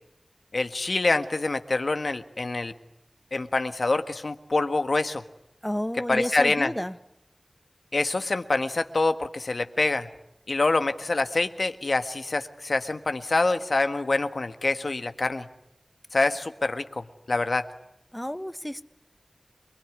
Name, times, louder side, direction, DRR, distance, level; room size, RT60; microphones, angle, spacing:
voice 1, 0.5-2.7 3.3-5.2 6.0-6.7 7.9-10.1 10.5-15.5 16.1-17.7, left 3 dB, 80° left, 8 dB, 1.5 m, -26 dB
voice 2, 5.6-6.9 18.1-18.8, equal, 10° left, 11 dB, 1.2 m, -31 dB
27.0 x 21.0 x 9.8 m, 0.83 s
wide cardioid pair, 45°, 0 cm